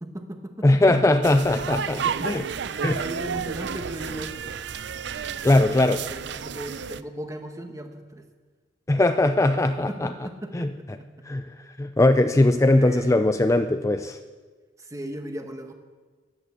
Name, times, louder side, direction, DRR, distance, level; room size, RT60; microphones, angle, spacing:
voice 1, 0.0-0.8 2.0-4.5 5.5-8.2 9.6-11.3 12.8-13.2 14.8-15.7, right 1 dB, 15° right, 5 dB, 1.3 m, -37 dB
voice 2, 0.6-2.4 2.8-3.0 5.4-6.0 8.9-10.1 10.5-10.7 11.3-11.4 11.8-14.2, left 2 dB, 15° left, 8 dB, 0.4 m, -20 dB
sound 1, 1.2-7.0, right 7 dB, 65° right, 0.5 m, -32 dB
13.0 x 11.0 x 8.4 m, 1.4 s
head